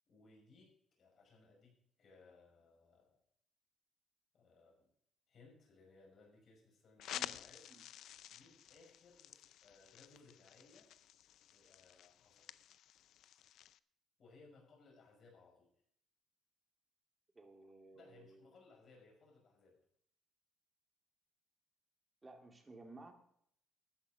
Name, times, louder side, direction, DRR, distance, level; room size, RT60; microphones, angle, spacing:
voice 1, 0.1-3.2 4.3-4.9 5.3-7.6 8.0-10.9 11.5-12.7 14.2-15.7 17.9-19.8, left 3 dB, 45° left, -1 dB, 5.6 m, -64 dB
sound 1, 7.0-13.8, left 11 dB, 65° left, 0.5 m, -51 dB
voice 2, 17.3-18.5 22.2-23.1, right 2 dB, 20° right, 4 dB, 2.3 m, -56 dB
13.0 x 9.8 x 5.0 m, 0.66 s
cardioid pair, 125°, 0 cm